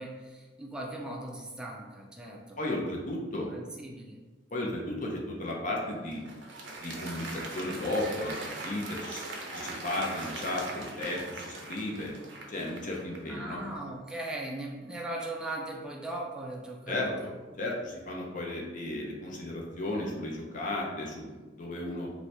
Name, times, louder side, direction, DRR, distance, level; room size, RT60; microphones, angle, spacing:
voice 1, 0.0-2.6 3.4-4.2 13.3-17.3, right 1 dB, 5° right, -2 dB, 0.3 m, -39 dB
voice 2, 2.6-3.5 4.5-6.2 6.8-12.1 12.5-13.6 16.9-17.3 17.6-22.1, left 1 dB, 45° left, -2 dB, 0.6 m, -34 dB
Applause, 5.7-13.4, right 2 dB, 85° right, 0.6 m, -41 dB
2.8 x 2.6 x 3.2 m, 1.3 s
head